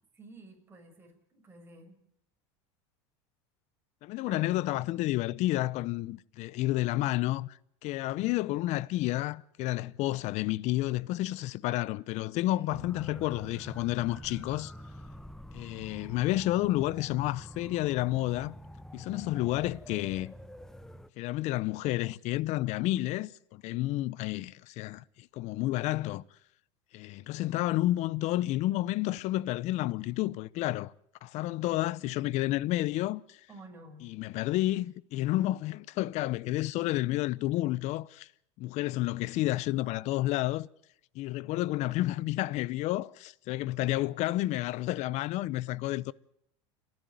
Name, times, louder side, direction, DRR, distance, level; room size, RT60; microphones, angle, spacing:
voice 1, 0.1-2.0 4.2-4.5 12.5-12.9 33.5-34.1, right 2 dB, 15° right, 6.3 m, -50 dB
voice 2, 4.0-7.6 7.8-14.7 15.5-18.5 18.9-20.3 21.2-26.2 26.9-30.9 31.2-33.4 34.0-38.3 38.6-40.7 41.1-46.1, left 16 dB, 50° left, 0.7 m, -30 dB
sound 1, 12.7-21.1, equal, 5° left, 0.8 m, -47 dB
29.5 x 11.0 x 9.2 m
supercardioid pair, 115°, 15 cm